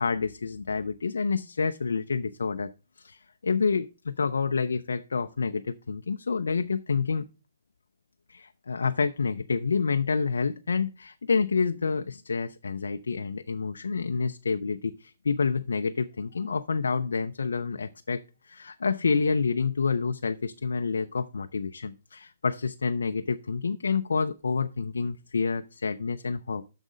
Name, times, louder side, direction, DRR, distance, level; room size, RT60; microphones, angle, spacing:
voice 1, 0.0-2.7 3.0-7.3 8.3-26.7, left 5 dB, 90° left, 9 dB, 0.4 m, -28 dB
6.5 x 6.3 x 5.0 m, 0.32 s
hypercardioid pair, 145°, 0 cm